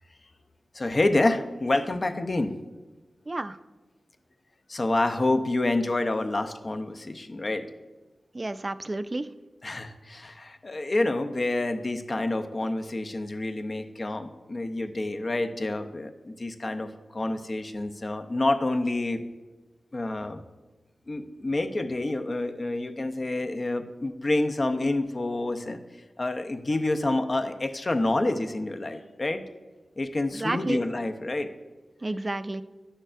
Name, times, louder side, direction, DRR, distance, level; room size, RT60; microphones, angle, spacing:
voice 1, 0.7-2.5 4.7-7.7 9.6-19.2 19.9-20.4 21.1-25.8 26.2-29.4 30.0-31.5, left 2 dB, 45° left, 7 dB, 0.6 m, -28 dB
voice 2, 3.3-3.6 8.3-9.3 30.3-30.8 32.0-32.6, right 2 dB, 35° right, 13 dB, 0.4 m, -30 dB
9.9 x 6.5 x 2.5 m, 1.2 s
cardioid pair, 55°, 0 cm